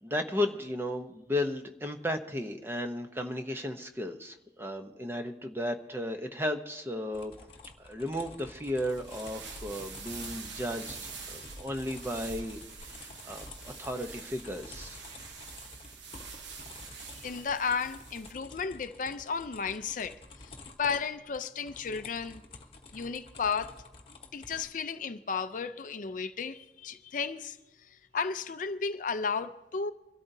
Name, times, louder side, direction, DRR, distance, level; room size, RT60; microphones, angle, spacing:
voice 1, 0.0-7.5 7.8-11.0 11.3-15.0, left 1 dB, 15° right, 0.7 m, -34 dB
sound 1, 7.1-24.7, left 3 dB, 30° left, 1.1 m, -50 dB
sound 2, 8.8-18.3, right 5 dB, 85° right, 1.0 m, -45 dB
voice 2, 17.1-20.5 20.8-22.4 22.9-23.8 24.3-29.9, left 5 dB, 45° left, 0.5 m, -34 dB
24.5 x 12.5 x 2.7 m
head